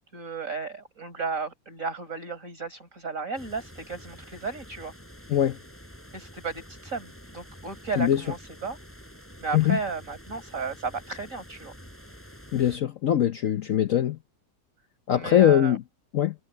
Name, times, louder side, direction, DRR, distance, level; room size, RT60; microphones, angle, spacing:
voice 1, 0.1-4.9 6.1-8.8 9.4-11.7 15.1-15.8, right 4 dB, 50° right, 5.2 m, -34 dB
sound 1, 3.3-12.8, equal, 5° left, 8.0 m, -48 dB
voice 2, 12.5-14.2 15.1-15.8 16.1-16.3, left 11 dB, 60° left, 1.0 m, -22 dB
omnidirectional pair, 1.8 m